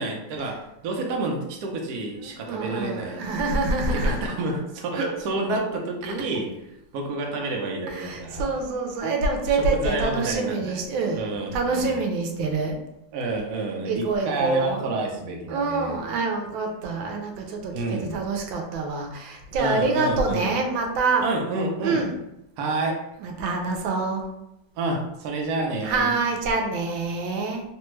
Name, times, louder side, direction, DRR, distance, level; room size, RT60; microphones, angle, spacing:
voice 1, 0.0-3.2 3.9-6.6 6.9-8.5 9.6-10.8 11.1-12.0 13.1-15.9 17.7-18.1 19.6-20.5 21.2-22.0 22.6-23.0 24.8-26.1, right 2 dB, 65° right, 0 dB, 1.0 m, -29 dB
voice 2, 2.1-4.2 6.2-6.3 7.9-12.8 13.8-14.9 15.5-21.3 21.8-22.1 23.2-24.2 25.8-27.6, right 3 dB, 90° right, 3 dB, 1.3 m, -26 dB
3.3 x 2.2 x 3.0 m, 0.85 s
omnidirectional pair, 2.1 m